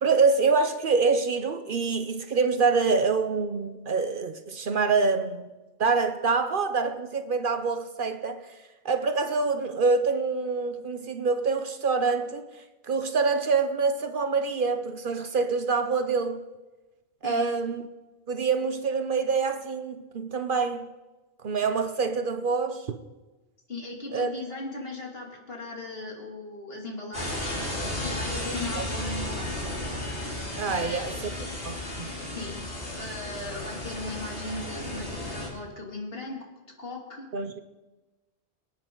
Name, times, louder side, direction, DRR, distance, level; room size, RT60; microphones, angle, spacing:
voice 1, 0.0-5.5 5.8-8.6 8.8-16.4 17.2-17.9 18.3-20.9 21.4-23.0 24.1-24.3 28.8-28.9 30.6-31.2 31.6-32.1 37.3-37.6, right 4 dB, 55° right, 0.8 m, -26 dB
voice 2, 23.7-27.7 28.0-29.8 30.7-31.5 32.3-32.6 32.9-36.4 36.8-37.3, left 2 dB, 60° left, 2.9 m, -38 dB
sound 1, 27.1-35.5, left 1 dB, 80° left, 3.6 m, -34 dB
24.0 x 9.5 x 3.8 m
omnidirectional pair, 1.1 m